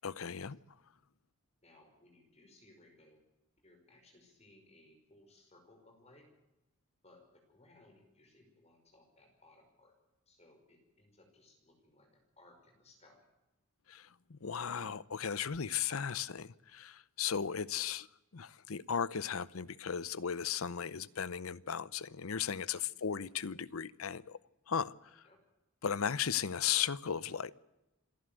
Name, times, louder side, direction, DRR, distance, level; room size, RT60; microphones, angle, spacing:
voice 1, 0.0-0.6 13.9-18.1 18.3-24.4 24.7-25.2 25.8-27.5, left 7 dB, 90° left, 0.7 m, -36 dB
voice 2, 1.6-3.2 3.6-6.3 7.0-9.9 10.3-13.3 22.9-23.2 25.2-25.4, left 2 dB, 30° left, 5.4 m, -63 dB
27.0 x 11.5 x 9.2 m
head